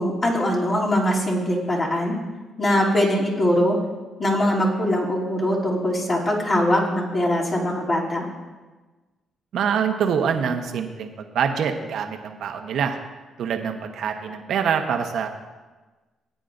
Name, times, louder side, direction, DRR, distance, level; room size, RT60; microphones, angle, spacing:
voice 1, 0.0-2.2 2.6-3.8 4.2-8.2, left 1 dB, 35° left, -4 dB, 2.9 m, -22 dB
voice 2, 9.5-13.0 13.4-15.3, right 7 dB, 70° right, 5 dB, 1.0 m, -25 dB
17.0 x 9.1 x 2.6 m, 1.2 s
cardioid pair, 90°, 0 cm